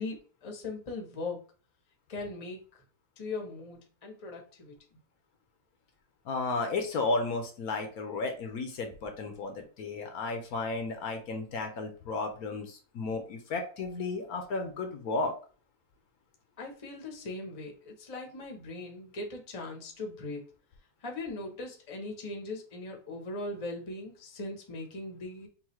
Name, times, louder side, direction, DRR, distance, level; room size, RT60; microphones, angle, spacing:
voice 1, 0.0-1.4 2.1-2.6 3.2-5.0 16.6-20.4 21.0-25.5, left 2 dB, 25° left, 2 dB, 0.8 m, -39 dB
voice 2, 6.2-15.3, left 3 dB, 70° left, 5 dB, 1.2 m, -33 dB
5.5 x 2.6 x 3.0 m, 0.39 s
omnidirectional pair, 1.7 m